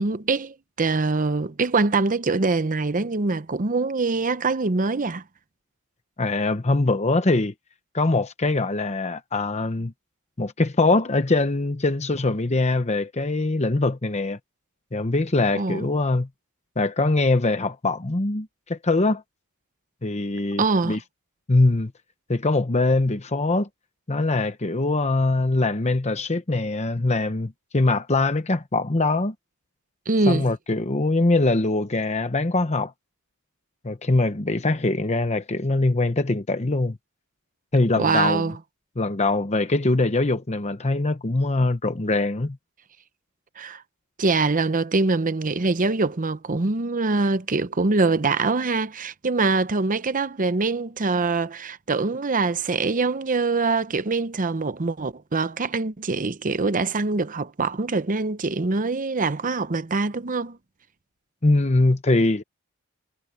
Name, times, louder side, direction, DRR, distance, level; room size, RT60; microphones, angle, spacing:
voice 1, 0.0-5.2 15.5-15.9 20.6-21.0 30.1-30.5 38.0-38.6 43.6-43.8 44.2-60.6, right 3 dB, 35° right, 0.7 m, -24 dB
voice 2, 6.2-7.5 7.9-9.9 10.4-14.4 14.9-16.3 16.8-19.2 20.0-21.0 21.5-21.9 22.3-23.7 24.1-29.3 30.3-32.9 33.8-37.0 37.7-38.4 39.0-42.6 61.4-62.4, left 2 dB, 30° left, 0.9 m, -22 dB
head